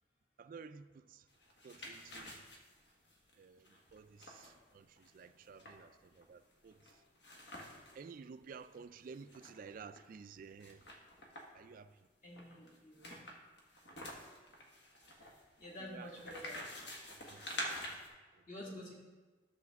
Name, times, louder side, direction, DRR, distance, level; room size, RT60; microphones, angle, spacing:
voice 1, 0.4-1.3 1.6-2.4 3.3-7.0 7.9-10.8 11.5-12.1 15.8-16.1 17.3-17.5 18.0-18.4, right 5 dB, 50° right, 0.3 m, -53 dB
sound 1, 1.3-8.0 8.4-8.5 8.7-10.0 10.6-11.7 12.3-18.1, left 1 dB, 70° left, 1.5 m, -48 dB
voice 2, 12.2-13.2 15.2-16.7 18.5-18.9, left 1 dB, 45° left, 2.0 m, -49 dB
11.5 x 6.8 x 3.5 m
head